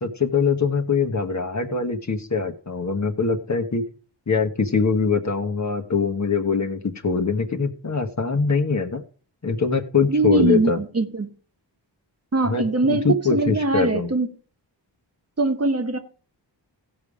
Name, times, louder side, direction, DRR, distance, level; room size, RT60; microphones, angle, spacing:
voice 1, 0.0-3.8 4.3-9.0 9.4-10.8 12.4-14.1, left 5 dB, 40° left, 1.2 m, -23 dB
voice 2, 10.1-11.3 12.3-14.3 15.4-16.0, right 2 dB, 35° right, 1.2 m, -22 dB
16.0 x 5.5 x 4.9 m
wide cardioid pair, 100°, 44 cm